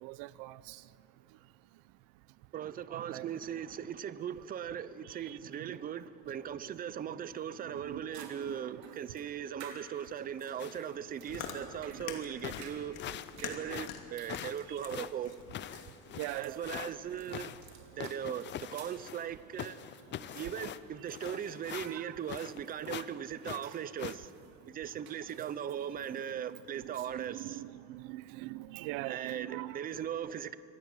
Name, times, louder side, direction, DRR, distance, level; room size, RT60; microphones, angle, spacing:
voice 1, 0.0-0.8 2.9-3.3 5.3-5.4 7.9-8.6 11.8-12.0 14.7-14.8 16.2-16.6 21.8-22.1 27.1-29.8, right 18 dB, 85° right, 0.7 m, -42 dB
voice 2, 2.5-13.0 13.4-15.3 16.4-17.5 18.0-19.9 20.3-24.3 24.7-27.6 29.1-30.6, right 9 dB, 25° right, 0.6 m, -39 dB
sound 1, 7.5-7.6 8.1-27.0, right 7 dB, 45° right, 3.4 m, -57 dB
sound 2, 10.6-11.0 11.3-11.6 12.1-12.2 12.4-13.4 13.7-16.9 17.3-19.3 19.6-22.6 22.9-23.1 23.4-24.2, left 11 dB, 30° left, 0.6 m, -43 dB
Chewing mastication, 10.9-17.4, left 7 dB, 75° left, 2.8 m, -46 dB
26.0 x 18.5 x 9.0 m
cardioid pair, 175°, 37 cm